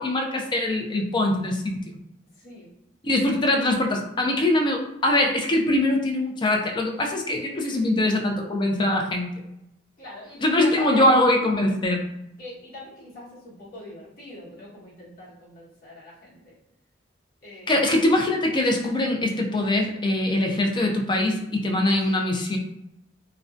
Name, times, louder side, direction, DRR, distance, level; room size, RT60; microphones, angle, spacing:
voice 1, 0.0-2.0 3.0-9.4 10.4-12.0 17.7-22.6, left 1 dB, 25° left, 2 dB, 0.3 m, -23 dB
voice 2, 2.4-2.7 7.6-7.7 10.0-11.2 12.4-16.5 17.4-18.1 22.0-22.1, left 1 dB, 55° left, -8 dB, 1.1 m, -41 dB
2.5 x 2.1 x 2.4 m, 0.85 s
head